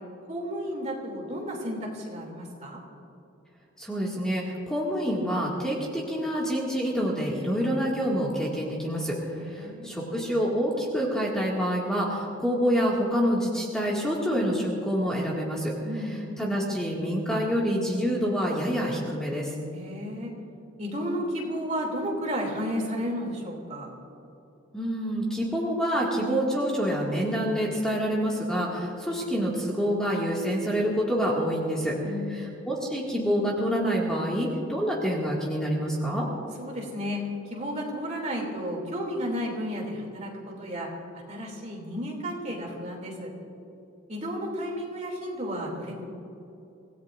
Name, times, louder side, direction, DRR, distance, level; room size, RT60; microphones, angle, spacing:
voice 1, 0.3-2.8 9.3-10.0 15.8-16.3 19.7-20.3 20.8-23.9 32.0-32.5 36.6-37.2 37.5-40.9 41.3-43.3 44.1-46.1, equal, 35° right, -1 dB, 2.9 m, -33 dB
voice 2, 3.8-9.2 9.5-19.5 24.7-31.9 32.3-36.3, equal, 5° left, -5 dB, 2.1 m, -27 dB
26.0 x 18.0 x 2.6 m, 2.8 s
head